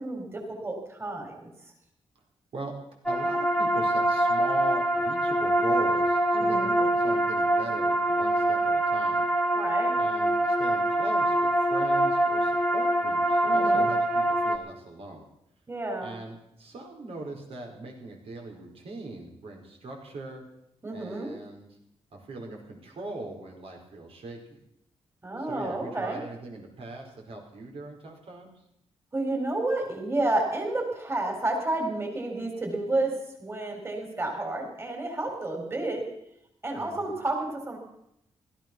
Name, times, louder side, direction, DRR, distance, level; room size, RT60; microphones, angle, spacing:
voice 1, 0.0-1.5 6.3-6.8 9.5-9.9 13.4-13.9 15.7-16.1 20.8-21.3 25.2-26.2 29.1-33.1 33.4-36.0 36.6-37.8, right 2 dB, 25° right, 1 dB, 4.2 m, -30 dB
sound 1, 3.1-14.6, right 1 dB, 5° left, 1.7 m, -24 dB
voice 2, 3.1-9.3 10.0-15.3 16.0-20.4 20.9-21.8 22.1-24.6 25.4-28.5 36.7-37.2, right 2 dB, 70° right, 1 dB, 4.7 m, -40 dB
16.5 x 13.5 x 6.1 m, 0.79 s
cardioid pair, 100°, 10 cm